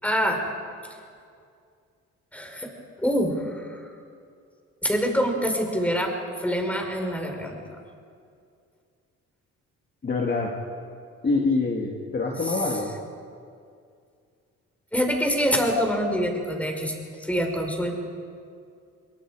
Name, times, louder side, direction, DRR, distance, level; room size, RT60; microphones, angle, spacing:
voice 1, 0.0-0.4 2.3-2.7 3.0-3.8 4.8-6.1 6.4-7.6 12.5-12.6 14.9-16.9 17.2-17.9, equal, 5° left, 2 dB, 4.9 m, -25 dB
voice 2, 10.0-10.5 11.2-12.9, left 3 dB, 35° left, -1 dB, 2.4 m, -25 dB
29.0 x 22.5 x 5.0 m, 2.3 s
cardioid pair, 90°, 30 cm